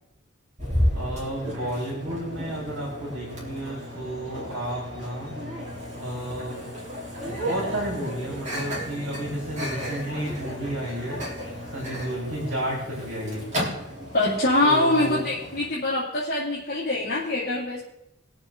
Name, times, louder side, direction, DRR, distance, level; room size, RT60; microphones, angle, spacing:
Microwave oven, 0.6-15.7, equal, 35° right, 3.8 m, -33 dB
voice 1, 0.9-5.4 5.9-6.7 7.4-11.2 11.7-13.5 14.6-15.2, right 1 dB, 65° right, -4 dB, 4.3 m, -32 dB
voice 2, 14.1-17.8, left 2 dB, 45° left, -7 dB, 2.3 m, -24 dB
22.0 x 7.5 x 3.8 m, 0.85 s
head